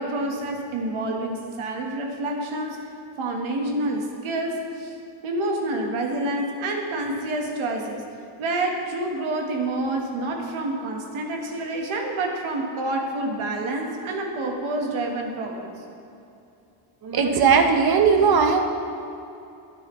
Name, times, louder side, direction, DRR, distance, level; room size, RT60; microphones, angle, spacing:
voice 1, 0.0-2.8 3.2-4.9 5.2-8.0 8.4-15.7, right 2 dB, 75° right, 1 dB, 1.6 m, -28 dB
voice 2, 17.0-18.6, right 5 dB, 50° right, 5 dB, 1.0 m, -18 dB
11.5 x 9.6 x 3.2 m, 2.7 s
cardioid pair, 130°, 48 cm